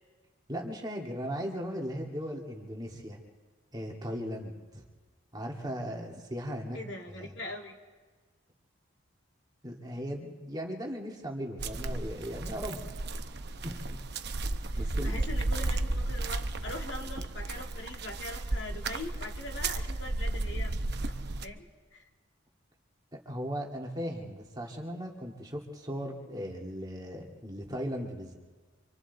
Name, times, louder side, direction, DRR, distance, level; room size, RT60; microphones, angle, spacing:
voice 1, 0.5-3.2 3.7-4.8 5.3-6.8 7.1-7.3 9.6-12.8 13.6-13.8 14.8-15.2 23.1-28.3, equal, 20° right, 0 dB, 2.0 m, -37 dB
voice 2, 6.7-7.8 14.7-20.7 21.0-21.1 21.4-22.0, left 2 dB, 60° left, 1 dB, 2.2 m, -42 dB
sound 1, 11.6-21.4, right 2 dB, 55° right, 0.9 m, -33 dB
27.5 x 25.5 x 4.0 m, 1.4 s
head